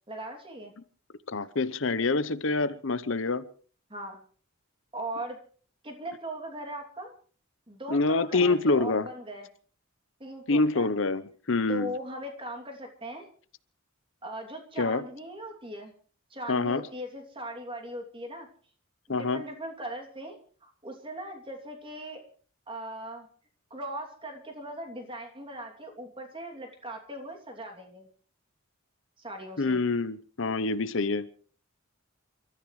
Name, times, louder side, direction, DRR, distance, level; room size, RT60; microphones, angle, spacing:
voice 1, 0.1-0.7 3.9-4.2 4.9-5.4 5.8-7.1 7.7-9.5 10.2-10.9 11.7-13.3 14.2-15.9 16.3-18.5 19.1-22.2 22.7-23.3 23.7-28.1 29.2-29.8, right 1 dB, 25° right, 2 dB, 2.9 m, -39 dB
voice 2, 1.3-3.4 7.9-9.1 10.5-11.9 14.8-15.0 16.5-16.8 19.1-19.4 29.6-31.3, left 3 dB, 60° left, 15 dB, 0.8 m, -26 dB
29.5 x 14.0 x 3.3 m, 0.43 s
head